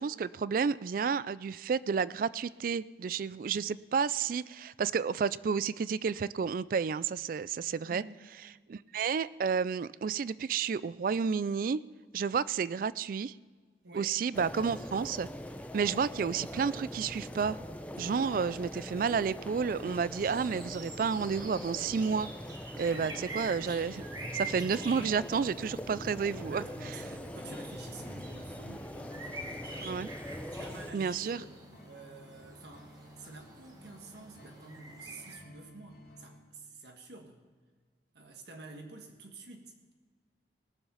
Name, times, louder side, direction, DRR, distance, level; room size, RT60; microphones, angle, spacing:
voice 1, 0.0-8.0 8.7-11.8 12.1-13.3 13.9-15.3 15.7-17.6 18.0-22.3 22.8-24.0 24.3-26.6 29.8-30.1 30.9-31.4, right 6 dB, 50° right, 18 dB, 0.3 m, -31 dB
voice 2, 7.8-8.1 13.8-14.1 22.9-23.2 24.5-24.9 26.4-30.0 30.5-31.5 31.8-37.4 38.1-39.9, right 2 dB, 65° right, 2 dB, 1.5 m, -50 dB
sound 1, 14.3-30.9, equal, 10° left, 0.7 m, -43 dB
sound 2, 20.2-35.4, right 3 dB, 20° right, 1.3 m, -47 dB
sound 3, 24.0-36.4, equal, 55° left, 3.3 m, -52 dB
19.0 x 7.3 x 5.7 m, 1.5 s
head